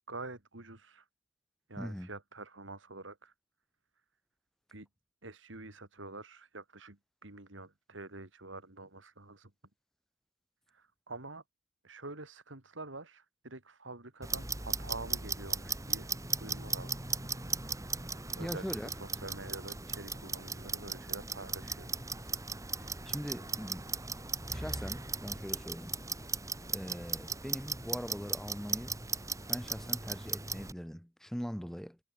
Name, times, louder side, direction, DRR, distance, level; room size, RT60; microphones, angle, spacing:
voice 1, 0.1-1.1 1.7-3.3 4.7-4.9 5.2-9.5 10.7-11.4 11.8-16.1 16.4-17.0 18.4-21.9, right 2 dB, 70° right, 3.0 m, -47 dB
voice 2, 1.8-2.1 18.4-18.9 22.8-24.2 24.5-26.0 26.7-29.0 29.5-32.0, equal, ahead, 1.0 m, -41 dB
Clock, 14.2-30.7, right 4 dB, 15° right, 2.2 m, -37 dB
head